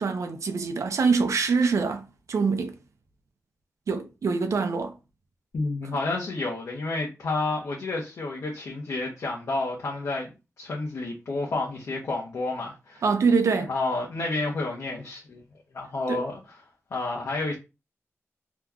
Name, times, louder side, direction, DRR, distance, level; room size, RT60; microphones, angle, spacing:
voice 1, 0.0-2.8 3.9-5.0 13.0-13.7 16.1-16.2, right 4 dB, 75° right, 0.5 m, -24 dB
voice 2, 5.5-10.3 10.6-13.0 13.7-15.4 15.7-16.6 16.9-17.5, left 2 dB, 75° left, 0.8 m, -30 dB
3.0 x 2.3 x 3.5 m
wide cardioid pair, 145°, 5 cm